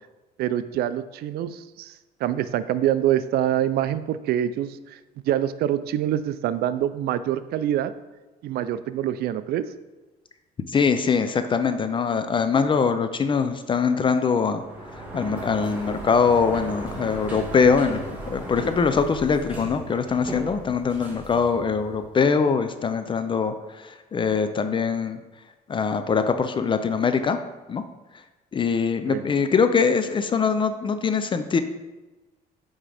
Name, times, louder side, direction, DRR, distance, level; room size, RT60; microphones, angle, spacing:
voice 1, 0.4-1.9 2.2-5.0 5.3-7.9 8.4-9.7 29.1-29.2, right 11 dB, 70° right, 14 dB, 0.4 m, -25 dB
voice 2, 10.7-14.6 15.1-25.2 25.7-27.4 27.7-27.8 28.5-31.6, left 5 dB, 30° left, 9 dB, 0.4 m, -23 dB
Sliding door, 14.5-22.3, right 1 dB, 10° right, 1.7 m, -37 dB
9.0 x 3.7 x 3.4 m, 1.1 s
cardioid pair, 110°, 17 cm